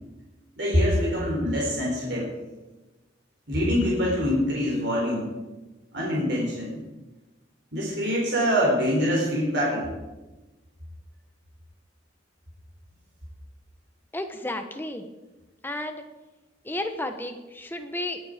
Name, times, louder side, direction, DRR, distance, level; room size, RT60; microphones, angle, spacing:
voice 1, 0.6-2.3 3.5-5.3 5.9-6.8 7.7-9.9, equal, 65° right, -4 dB, 4.3 m, -24 dB
voice 2, 14.1-15.0 15.6-16.1 16.6-18.2, left 1 dB, 10° left, 6 dB, 1.1 m, -32 dB
19.5 x 8.7 x 5.1 m, 1.1 s
head